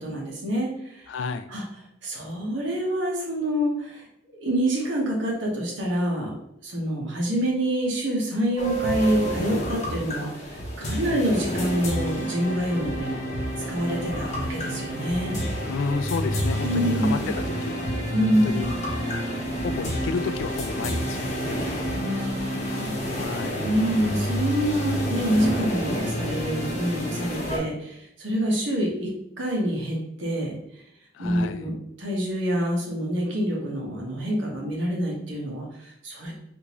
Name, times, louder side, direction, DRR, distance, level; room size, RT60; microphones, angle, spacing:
voice 1, 0.0-1.1 1.5-1.6 2.0-4.0 4.4-6.4 6.6-13.2 13.7-15.4 16.6-17.3 18.1-18.5 21.9-23.2 23.6-29.1 29.4-30.6 31.2-36.3, equal, 80° right, -2 dB, 1.0 m, -26 dB
voice 2, 1.1-1.5 11.0-11.3 15.6-18.7 19.6-22.0 23.1-23.7 31.1-31.7, left 4 dB, 80° left, 10 dB, 0.3 m, -32 dB
sound 1, 8.6-27.6, equal, 35° left, 0.7 m, -29 dB
3.6 x 2.6 x 2.9 m, 0.78 s
head